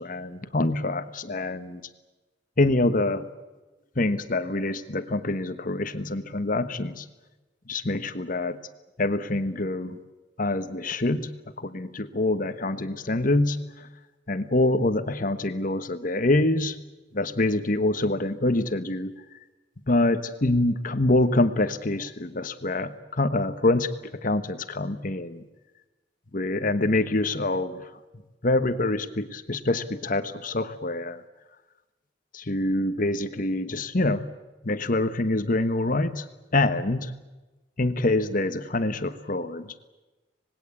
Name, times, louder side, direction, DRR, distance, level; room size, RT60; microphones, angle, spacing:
voice 1, 0.0-1.8 2.6-3.3 4.0-7.0 7.7-8.6 9.0-10.0 10.4-11.3 11.6-13.6 14.3-16.8 17.1-19.1 19.9-23.9 24.2-25.4 26.3-27.8 28.4-31.2 32.3-34.2 34.6-36.2 36.5-37.1 37.8-39.7, left 2 dB, 45° left, 10 dB, 1.2 m, -25 dB
26.0 x 20.0 x 8.4 m, 1.1 s
head